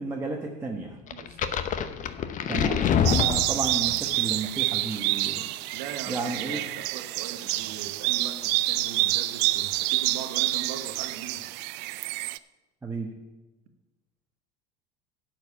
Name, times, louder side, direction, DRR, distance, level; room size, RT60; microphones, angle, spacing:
voice 1, 0.0-1.0 2.5-5.5 6.1-6.6 12.8-13.1, right 3 dB, 10° right, -1 dB, 1.2 m, -33 dB
sound 1, 1.1-4.0, left 8 dB, 40° left, 0.9 m, -26 dB
voice 2, 1.1-1.6 5.7-11.5, right 8 dB, 75° right, 7 dB, 1.4 m, -40 dB
sound 2, 3.0-12.4, right 18 dB, 55° right, 0.4 m, -28 dB
12.5 x 4.7 x 8.4 m, 1.1 s
supercardioid pair, 100°, 21 cm